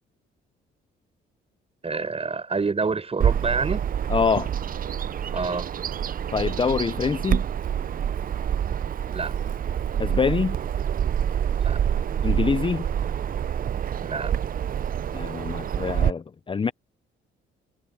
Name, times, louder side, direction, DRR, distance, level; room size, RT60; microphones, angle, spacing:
voice 1, 1.8-3.8 5.3-5.7 9.1-9.3 11.6-11.8 14.0-14.3, right 4 dB, 30° right, 7.1 m, -27 dB
Bird vocalization bird call bird song, 3.2-16.1, right 9 dB, 45° right, 0.6 m, -27 dB
voice 2, 4.1-4.5 6.3-7.4 10.0-10.6 12.2-12.8 15.1-16.7, left 5 dB, 25° left, 0.6 m, -25 dB
cardioid pair, 90°, 20 cm